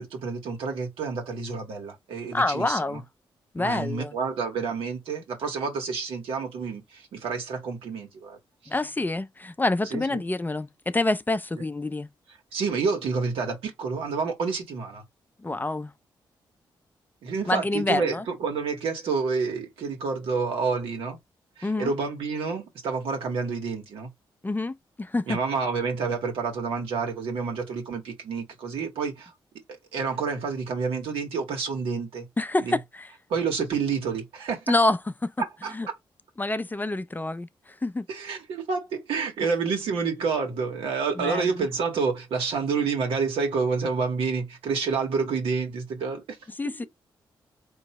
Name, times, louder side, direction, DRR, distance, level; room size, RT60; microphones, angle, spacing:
voice 1, 0.0-3.0 3.6-8.7 9.8-10.2 11.6-11.7 12.5-15.0 17.2-21.2 21.6-24.1 25.3-29.3 29.9-32.3 32.6-32.8 33.3-34.7 35.4-35.9 38.1-46.4 46.6-46.8, right 5 dB, 85° right, 1.7 m, -29 dB
voice 2, 2.3-3.0 3.5-4.1 8.7-12.1 15.4-15.9 17.5-18.2 21.6-21.9 24.4-25.4 32.4-33.1 34.7-35.3 35.7-35.9 36.4-38.1 41.2-41.5 46.6-46.9, left 2 dB, 20° left, 0.5 m, -27 dB
4.5 x 3.1 x 3.0 m
cardioid pair, 60°, 9 cm